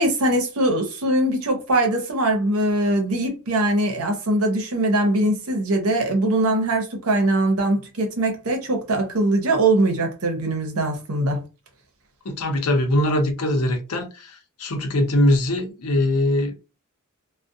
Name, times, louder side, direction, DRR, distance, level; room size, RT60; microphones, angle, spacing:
voice 1, 0.0-11.4, right 1 dB, 70° right, 0.8 m, -21 dB
voice 2, 12.2-16.5, left 1 dB, 75° left, 0.7 m, -22 dB
2.3 x 2.2 x 2.6 m
head